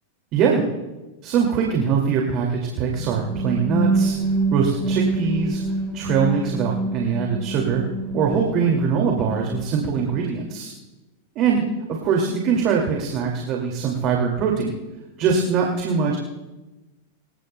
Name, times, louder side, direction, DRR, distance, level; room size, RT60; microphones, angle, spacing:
voice 1, 0.3-0.6 1.2-4.2 4.5-5.6 5.9-7.8 8.1-10.7 11.4-11.6 11.9-14.8 15.2-16.2, right 6 dB, 45° right, 0 dB, 2.3 m, -22 dB
sound 1, 2.9-10.6, right 2 dB, 5° right, 4.3 m, -26 dB
26.0 x 16.5 x 2.3 m, 1.1 s
hypercardioid pair, 100°, 0 cm